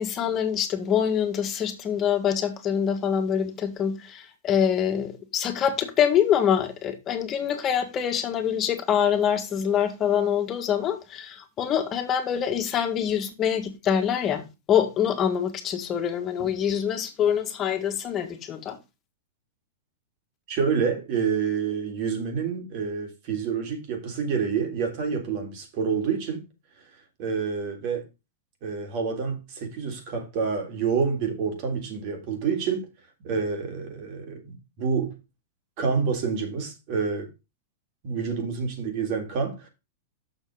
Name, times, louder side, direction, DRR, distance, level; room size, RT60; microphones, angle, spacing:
voice 1, 0.0-18.8, left 8 dB, 30° left, 1.8 m, -25 dB
voice 2, 20.5-26.4 27.2-28.1 28.6-32.9 33.2-35.1 35.8-37.3 38.0-39.7, right 6 dB, 50° right, 3.5 m, -28 dB
6.7 x 6.4 x 4.9 m
hypercardioid pair, 120°, 0 cm